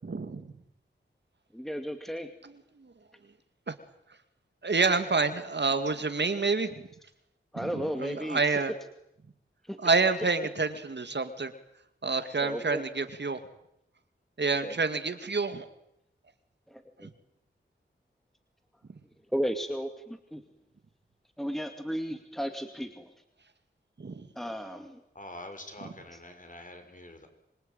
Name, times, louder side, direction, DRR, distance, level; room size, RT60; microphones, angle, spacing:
voice 1, 0.0-0.5 2.4-2.9 3.7-3.8 4.6-6.7 7.6-8.7 9.8-11.5 12.0-13.4 14.4-15.7 17.0-17.1 24.0-24.3, right 4 dB, 60° right, 9 dB, 2.2 m, -28 dB
voice 2, 1.5-2.3 7.5-8.6 9.6-9.8 12.4-12.8 14.6-14.7 16.7-17.1 19.3-20.4 21.4-23.1 24.3-25.0, equal, ahead, 6 dB, 2.4 m, -34 dB
voice 3, 25.1-27.3, left 1 dB, 40° left, 6 dB, 5.7 m, -45 dB
26.0 x 25.0 x 9.1 m, 0.80 s
wide cardioid pair, 80°, 21 cm